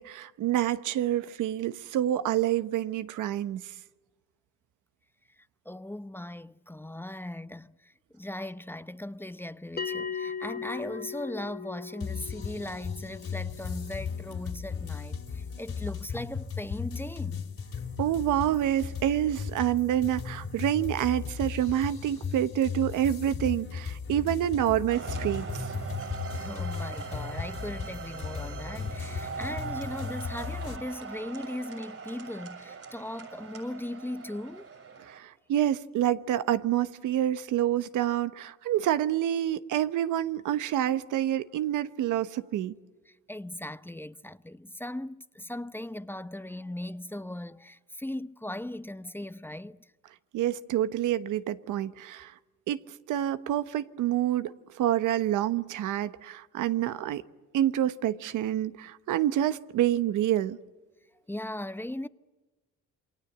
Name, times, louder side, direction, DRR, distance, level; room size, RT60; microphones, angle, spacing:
voice 1, 0.0-3.7 18.0-25.7 35.1-42.7 50.3-52.3 52.7-52.8 53.1-57.2 57.5-60.6, right 12 dB, 85° right, 1.1 m, -27 dB
voice 2, 5.4-17.5 26.4-34.7 43.1-49.9 61.3-62.1, left 1 dB, 5° left, 0.8 m, -38 dB
Bell, 9.8-14.8, left 6 dB, 30° left, 1.2 m, -39 dB
sound 1, 12.0-30.8, left 6 dB, 45° left, 2.7 m, -36 dB
sound 2, 24.9-35.2, right 5 dB, 50° right, 6.6 m, -40 dB
28.0 x 23.5 x 8.0 m
cardioid pair, 90°, 30 cm